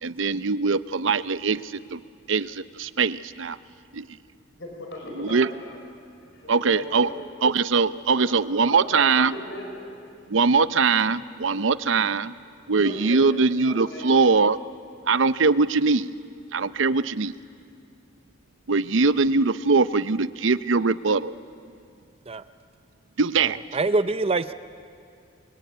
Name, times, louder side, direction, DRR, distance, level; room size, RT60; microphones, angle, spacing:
voice 1, 0.0-2.0 2.3-3.6 3.9-4.1 5.2-5.5 6.5-7.1 7.4-9.3 10.3-12.3 12.7-14.6 15.1-16.1 16.5-17.3 18.7-21.4 23.2-23.6, right 4 dB, 85° right, 15 dB, 0.7 m, -22 dB
voice 2, 4.6-5.8 6.2-7.2 8.6-9.9 12.8-14.1, left 1 dB, 70° left, 0 dB, 5.0 m, -37 dB
voice 3, 23.4-24.5, right 3 dB, 30° right, 12 dB, 0.6 m, -25 dB
27.5 x 23.0 x 9.4 m, 2.3 s
head